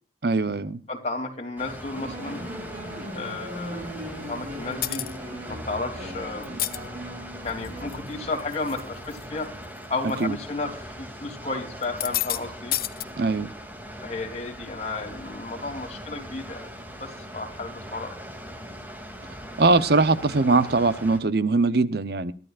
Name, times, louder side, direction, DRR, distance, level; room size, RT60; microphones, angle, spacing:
voice 1, 0.2-0.8 10.2-10.4 13.2-13.5 19.6-22.3, right 3 dB, 65° right, 14 dB, 0.8 m, -21 dB
voice 2, 0.9-2.4 3.1-3.8 4.3-5.0 5.5-6.5 7.4-9.5 9.9-12.8 14.0-16.7 17.0-18.2, left 3 dB, 40° left, 3 dB, 3.2 m, -33 dB
Water, 1.6-21.2, equal, 10° right, 2.7 m, -41 dB
sound 1, 2.0-8.6, equal, 50° right, 4.9 m, -38 dB
sound 2, 4.8-5.2 6.4-6.8 7.5-7.9 8.4-8.8 9.1-9.2 10.1-10.2 11.8-12.4 12.7-13.0, left 14 dB, 55° left, 0.8 m, -28 dB
22.5 x 13.5 x 2.5 m, 0.38 s
head